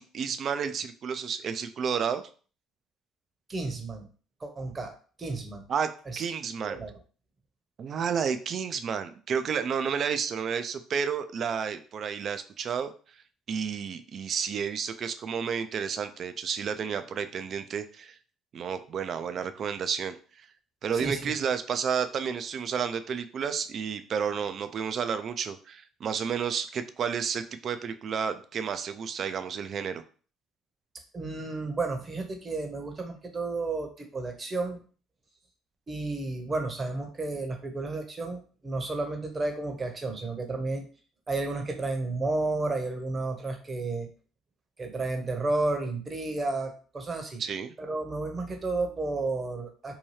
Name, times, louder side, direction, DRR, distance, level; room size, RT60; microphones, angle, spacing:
voice 1, 0.0-2.2 5.7-5.9 6.2-6.8 7.8-13.2 13.5-18.2 18.5-20.5 20.8-30.0 47.4-47.7, right 7 dB, 55° right, 10 dB, 0.3 m, -31 dB
voice 2, 3.5-4.1 4.4-4.9 5.2-5.6 6.1-6.2 6.6-6.9 20.9-21.3 31.1-34.8 35.9-40.8 41.3-44.1 44.8-47.4 47.8-50.0, right 3 dB, 35° right, 4 dB, 0.8 m, -32 dB
2.7 x 2.2 x 3.2 m, 0.40 s
supercardioid pair, 65°, 0 cm